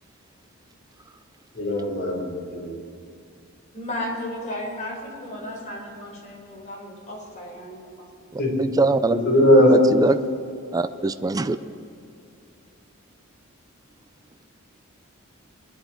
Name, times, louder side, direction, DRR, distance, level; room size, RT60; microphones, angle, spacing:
voice 1, 1.5-2.7 8.4-8.7 9.1-9.7, equal, 50° left, -3 dB, 4.7 m, -19 dB
voice 2, 3.7-8.1, left 1 dB, 35° left, -2 dB, 4.3 m, -34 dB
voice 3, 8.6-9.2 9.7-10.2 10.7-11.6, right 3 dB, 15° right, 10 dB, 0.4 m, -22 dB
23.0 x 11.0 x 4.5 m, 2.4 s
head